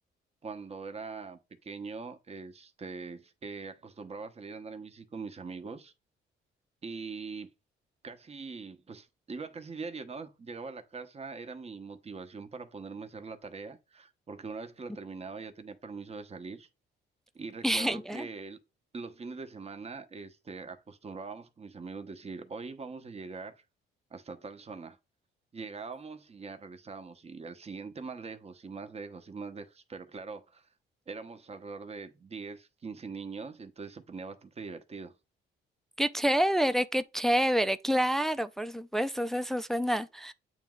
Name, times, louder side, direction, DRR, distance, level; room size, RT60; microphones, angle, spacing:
voice 1, 0.4-5.9 6.8-7.5 8.0-16.7 17.3-18.6 18.9-23.6 24.1-25.0 25.5-30.7 31.1-35.1, right 4 dB, 30° right, 1.0 m, -42 dB
voice 2, 17.6-18.3 36.0-40.3, equal, ahead, 0.4 m, -28 dB
8.2 x 3.1 x 3.7 m
cardioid pair, 90°, 20 cm